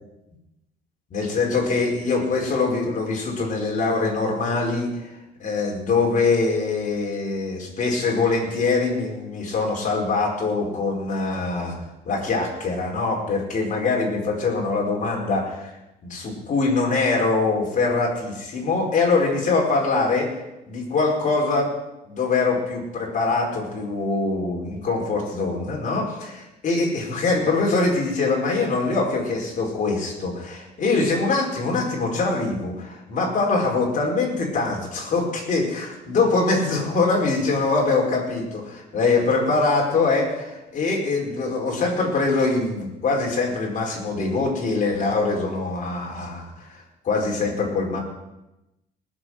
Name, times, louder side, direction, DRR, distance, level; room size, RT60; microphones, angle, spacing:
voice 1, 1.1-5.1 5.4-11.8 12.0-15.7 16.1-20.3 20.7-21.7 22.1-48.0, left 3 dB, 50° left, 0 dB, 4.5 m, -23 dB
19.5 x 7.3 x 6.4 m, 0.96 s
cardioid pair, 110°, 17 cm